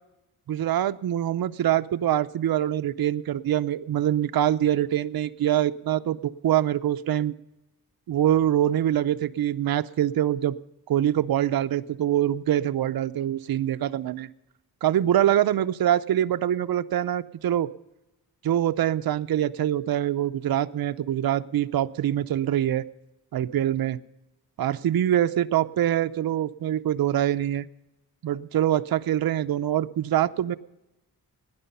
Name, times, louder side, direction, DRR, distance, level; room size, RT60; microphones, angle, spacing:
voice 1, 0.5-7.3 8.1-10.6 10.9-14.3 14.8-17.7 18.4-22.8 23.3-24.0 24.6-27.7 28.2-30.6, right 11 dB, 65° right, 11 dB, 0.6 m, -24 dB
17.0 x 10.5 x 5.4 m, 0.94 s
wide cardioid pair, 100°, 38 cm